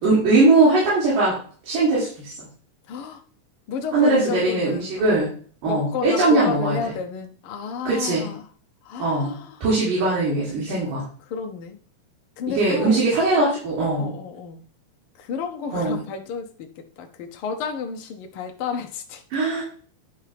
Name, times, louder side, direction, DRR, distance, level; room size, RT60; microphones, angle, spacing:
voice 1, 0.0-1.4 1.6-2.3 3.9-5.3 5.6-6.8 7.9-8.3 9.0-9.3 9.6-11.1 12.5-14.1 15.7-16.0 19.3-19.6, right 2 dB, 90° right, -8 dB, 4.5 m, -20 dB
voice 2, 2.9-3.2 3.7-5.3 5.7-8.4 8.9-9.5 11.3-11.8 12.4-13.0 14.0-14.6 15.3-16.7 17.0-19.2, left 6 dB, 90° left, 3 dB, 1.2 m, -31 dB
10.5 x 4.6 x 3.4 m, 0.44 s
omnidirectional pair, 3.7 m